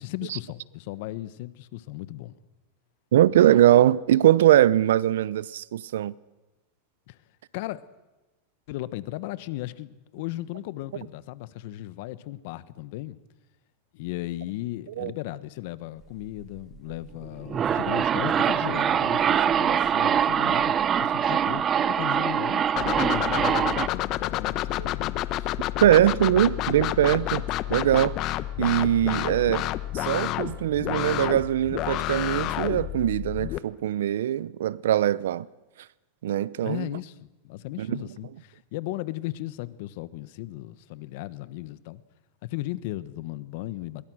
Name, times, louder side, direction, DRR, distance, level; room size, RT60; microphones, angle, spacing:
voice 1, 0.0-2.4 7.1-7.2 7.5-7.9 8.7-13.2 13.9-25.5 36.6-42.0 42.4-44.1, left 17 dB, 60° left, 1.2 m, -36 dB
voice 2, 3.1-6.1 15.0-15.1 18.3-18.4 24.8-24.9 25.8-27.4 27.7-28.2 28.6-29.7 29.9-35.5 36.2-36.9 37.8-38.0, right 12 dB, 80° right, 0.7 m, -21 dB
sound 1, 17.3-23.9, right 8 dB, 25° right, 0.7 m, -24 dB
sound 2, 22.8-33.6, left 14 dB, 40° left, 1.0 m, -29 dB
24.5 x 22.0 x 6.4 m
supercardioid pair, 135°, 0 cm